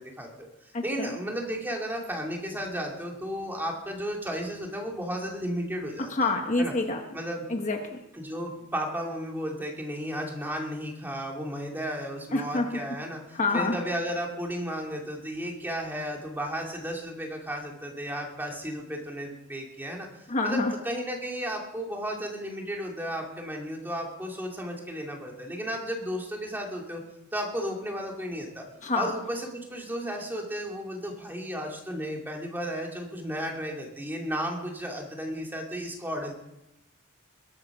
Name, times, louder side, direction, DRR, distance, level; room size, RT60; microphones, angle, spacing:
voice 1, 0.0-6.1 6.6-6.7 7.1-7.4 8.1-13.2 13.5-27.0 27.3-28.6 28.9-36.3, equal, 10° right, 0 dB, 2.6 m, -34 dB
voice 2, 0.7-1.2 6.0-7.0 7.5-8.0 12.3-12.7 13.3-13.8 20.3-20.7 28.8-29.1, left 2 dB, 35° left, 4 dB, 1.1 m, -27 dB
21.5 x 8.9 x 6.0 m, 0.90 s
head